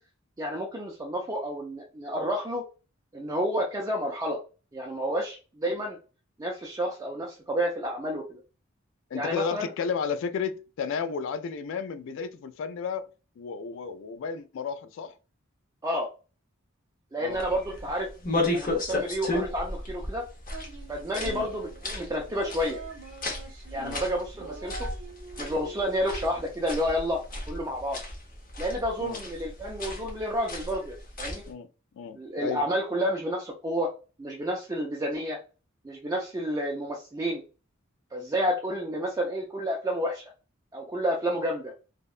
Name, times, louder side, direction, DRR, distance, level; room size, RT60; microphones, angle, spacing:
voice 1, 0.4-2.7 3.1-4.4 4.7-6.0 6.4-8.4 9.1-9.7 15.8-16.1 17.1-18.1 18.5-20.2 20.9-22.8 23.7-24.9 25.4-27.2 27.5-28.0 28.6-31.4 32.2-33.9 34.2-35.4 35.8-37.4 38.1-40.2 40.7-41.7, equal, 15° right, 0.3 m, -30 dB
voice 2, 9.1-13.1 13.4-15.2 17.2-17.4 21.2-21.5 23.8-24.0 29.0-29.2 31.5-31.7 32.0-32.7, left 6 dB, 65° left, 0.3 m, -33 dB
sound 1, 17.3-31.5, left 2 dB, 45° left, 0.7 m, -35 dB
sound 2, 20.5-21.8 22.3-23.9 24.3-26.4, right 4 dB, 75° right, 0.6 m, -44 dB
2.7 x 2.1 x 2.3 m
head